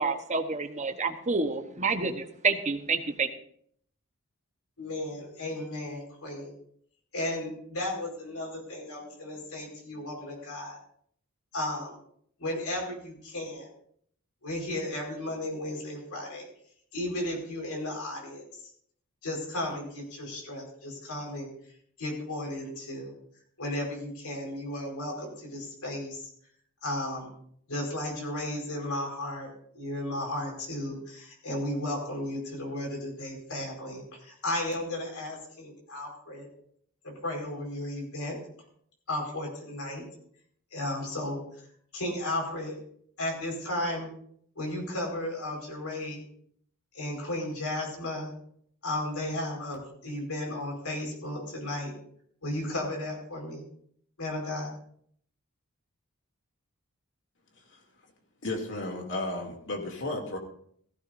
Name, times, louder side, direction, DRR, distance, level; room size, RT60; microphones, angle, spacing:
voice 1, 0.0-3.3, right 4 dB, 30° right, 6 dB, 1.1 m, -28 dB
voice 2, 4.8-6.5 7.1-10.8 11.5-12.0 12.4-13.7 14.4-16.5 16.9-18.4 19.2-21.5 22.0-23.1 23.6-26.3 26.8-27.3 27.7-36.5 37.0-38.4 39.1-40.0 40.7-41.4 41.9-42.8 43.2-44.1 44.6-46.2 46.9-48.3 48.8-51.9 52.4-53.6 54.2-54.7, left 1 dB, 75° left, 1 dB, 5.0 m, -34 dB
voice 3, 58.4-60.4, left 2 dB, 55° left, 2 dB, 2.7 m, -33 dB
16.5 x 15.0 x 2.7 m, 0.64 s
head